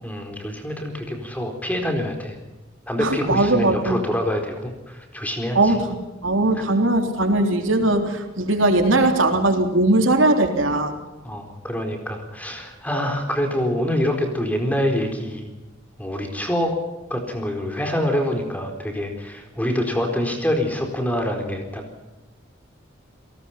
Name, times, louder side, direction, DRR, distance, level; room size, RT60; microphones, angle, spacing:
voice 1, 0.0-2.4 2.9-5.7 11.2-15.5 16.0-16.7 17.1-21.8, left 1 dB, 10° left, 4 dB, 4.2 m, -25 dB
voice 2, 3.0-4.0 5.5-5.9 6.2-10.9, right 2 dB, 90° right, 4 dB, 3.5 m, -19 dB
29.5 x 18.5 x 6.0 m, 1.1 s
head